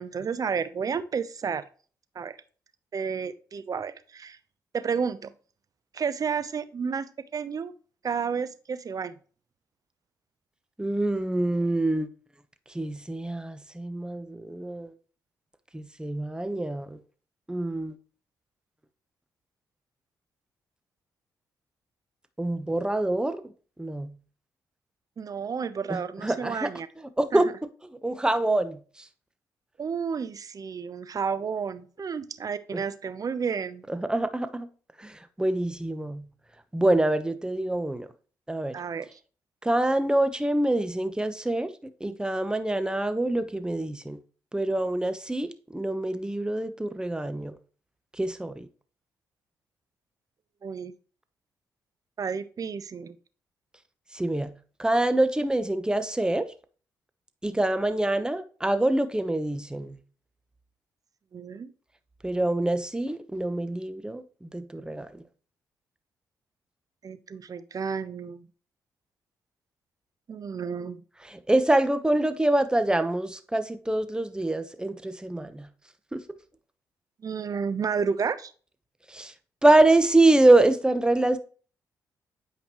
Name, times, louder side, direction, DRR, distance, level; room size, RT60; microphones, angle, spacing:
voice 1, 0.0-1.6 2.1-2.4 2.9-4.4 4.7-5.3 5.9-7.7 8.0-9.1 25.2-26.9 27.3-27.4 29.8-33.8 38.7-39.2 50.6-50.9 52.2-53.1 61.3-61.7 67.0-68.5 70.3-71.0 77.2-78.5, right 6 dB, 50° right, 0.8 m, -31 dB
voice 2, 10.8-12.1 12.7-14.9 15.7-17.0 17.5-18.0 22.4-23.4 23.8-24.1 25.9-26.7 27.2-27.5 28.0-29.1 32.7-32.8 33.9-34.7 35.0-36.3 36.7-38.1 38.5-38.8 39.6-41.7 42.0-44.2 44.5-47.6 48.2-48.7 54.1-54.5 54.8-56.5 57.4-60.0 62.2-65.2 71.3-75.7 76.1-76.2 79.1-79.3 79.6-81.4, right 2 dB, 10° right, 1.1 m, -25 dB
8.7 x 5.1 x 3.1 m
hypercardioid pair, 50°, 8 cm